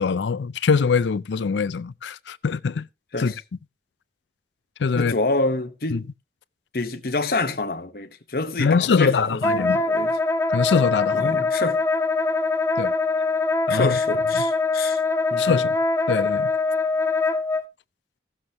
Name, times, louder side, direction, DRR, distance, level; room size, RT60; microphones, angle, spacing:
voice 1, 0.0-2.9 3.2-3.3 4.8-5.1 5.9-6.0 8.6-9.8 10.5-11.4 12.8-12.9 13.7-14.0 15.4-15.8 16.1-16.5, left 5 dB, 90° left, 0.4 m, -23 dB
voice 2, 4.9-6.1 6.7-10.2 11.1-11.8 13.7-15.0 15.3-15.6, left 2 dB, 55° left, 1.0 m, -27 dB
Wind instrument woodwind instrument, 9.4-17.6, left 3 dB, 15° left, 0.5 m, -23 dB
16.0 x 7.1 x 2.9 m
head